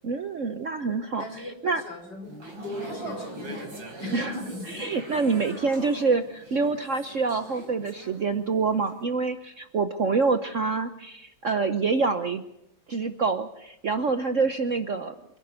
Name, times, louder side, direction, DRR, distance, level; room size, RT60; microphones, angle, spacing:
voice 1, 0.0-1.2 1.6-1.8 4.1-4.3 4.8-12.4 12.9-15.1, right 4 dB, 50° right, 9 dB, 1.0 m, -26 dB
voice 2, 1.2-3.6 4.0-4.6, left 2 dB, 60° left, 3 dB, 6.2 m, -38 dB
sound 1, 2.2-8.5 8.8-9.0, right 1 dB, 75° right, 5.6 m, -41 dB
29.0 x 11.5 x 9.6 m, 0.83 s
omnidirectional pair, 2.1 m